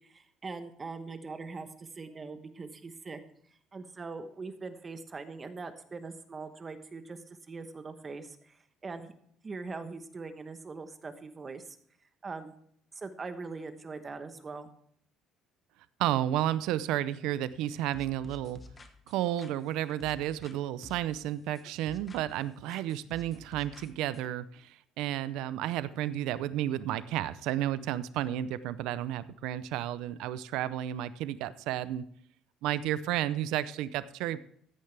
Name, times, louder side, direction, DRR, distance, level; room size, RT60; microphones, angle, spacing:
voice 1, 0.0-3.2 3.7-7.2 7.5-9.1 9.4-11.8 12.2-12.5 12.9-14.7, right 4 dB, 25° right, 9 dB, 1.1 m, -42 dB
voice 2, 16.0-18.6 19.1-32.0 32.6-34.4, right 12 dB, 85° right, 16 dB, 0.5 m, -32 dB
sound 1, 17.9-20.6 20.8-22.4 22.7-24.3, left 3 dB, 20° left, 1.1 m, -52 dB
14.5 x 10.0 x 3.4 m, 0.65 s
cardioid pair, 150°, 0 cm